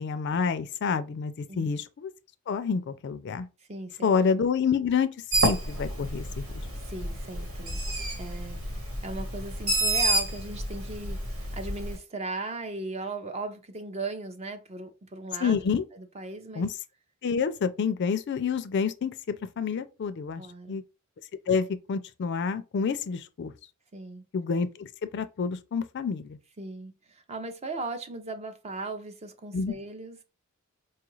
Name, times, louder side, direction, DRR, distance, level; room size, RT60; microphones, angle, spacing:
voice 1, 0.0-2.1 2.5-3.5 4.0-5.1 5.4-6.4 15.4-15.8 16.6-16.7 17.2-20.4 20.7-20.8 21.5-23.5 24.3-24.9 25.1-26.4 29.5-29.7, left 6 dB, 55° left, 0.4 m, -28 dB
voice 2, 3.7-4.1 6.7-7.8 8.2-8.6 9.0-11.2 11.5-15.6 15.9-16.7 20.4-20.8 23.9-24.2 26.6-30.2, right 3 dB, 30° right, 0.5 m, -37 dB
Bird, 5.3-12.0, right 1 dB, 80° right, 1.4 m, -29 dB
4.5 x 2.4 x 3.1 m
head